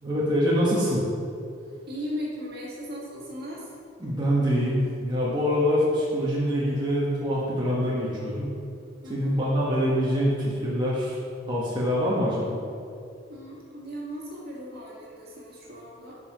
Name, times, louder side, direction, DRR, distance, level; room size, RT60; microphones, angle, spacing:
voice 1, 0.0-1.0 4.0-8.6 9.1-11.2 11.5-12.6, equal, 25° right, -7 dB, 1.3 m, -25 dB
voice 2, 1.9-3.7 9.0-9.5 13.3-16.2, equal, 55° right, -4 dB, 2.0 m, -37 dB
8.2 x 5.5 x 4.9 m, 2.5 s
head